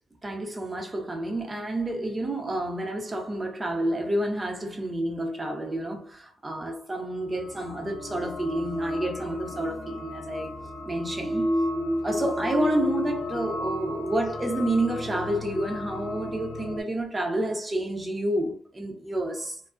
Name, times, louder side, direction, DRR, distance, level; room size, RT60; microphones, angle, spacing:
voice 1, 0.2-10.5 10.9-11.5 12.0-19.6, right 1 dB, 20° right, 0.7 m, -29 dB
sound 1, 7.3-16.8, left 1 dB, 55° left, 0.4 m, -32 dB
2.5 x 2.2 x 2.3 m
cardioid pair, 90°, 0 cm